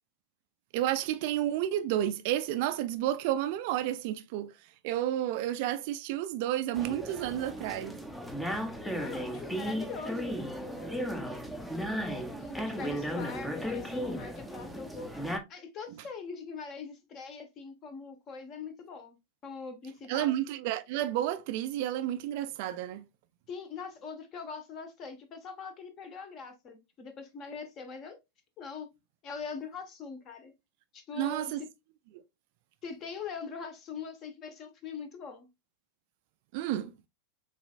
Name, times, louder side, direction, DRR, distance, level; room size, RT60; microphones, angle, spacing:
voice 1, 0.7-4.5 4.8-8.0 20.1-23.0 31.2-31.6 36.5-36.9, right 12 dB, 45° right, 0.3 m, -31 dB
sound 1, 6.7-15.4, equal, ahead, 0.5 m, -35 dB
voice 2, 9.0-11.4 12.4-15.1 15.5-19.2 19.4-20.3 23.5-28.2 28.6-28.9 29.2-30.5 30.9-31.7 32.8-35.5, left 5 dB, 35° left, 0.9 m, -42 dB
6.7 x 2.4 x 2.2 m
figure-of-eight pair, 90°, 0 cm